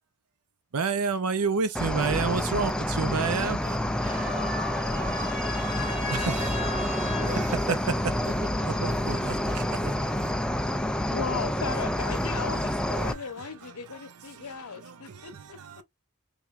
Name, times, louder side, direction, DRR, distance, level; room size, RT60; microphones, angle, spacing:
voice 1, 0.7-4.1 6.1-6.6 7.3-8.3 8.6-10.3 13.0-15.8, right 5 dB, 80° right, 0.6 m, -31 dB
Cricket, 1.7-13.1, left 1 dB, 5° left, 0.3 m, -28 dB
voice 2, 4.0-7.9 8.3-9.1, left 1 dB, 35° right, 1.8 m, -36 dB
voice 3, 11.1-15.6, left 5 dB, 80° left, 0.8 m, -36 dB
3.5 x 3.3 x 2.5 m
head